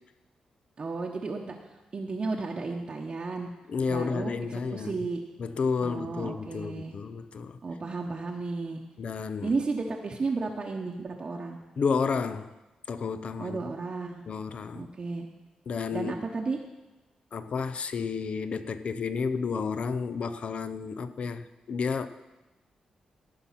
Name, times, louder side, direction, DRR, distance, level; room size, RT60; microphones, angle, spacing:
voice 1, 0.8-1.5 1.9-3.5 3.9-5.2 5.8-6.9 7.6-8.8 9.4-11.6 13.4-14.2 14.7-15.3 15.9-16.6, right 3 dB, 40° right, 0.9 m, -33 dB
voice 2, 3.7-5.0 5.4-7.6 9.0-9.5 11.8-12.5 12.9-13.6 14.3-14.9 15.7-16.2 17.3-22.1, left 5 dB, 55° left, 0.6 m, -31 dB
14.5 x 5.5 x 5.7 m
cardioid pair, 85°, 2 cm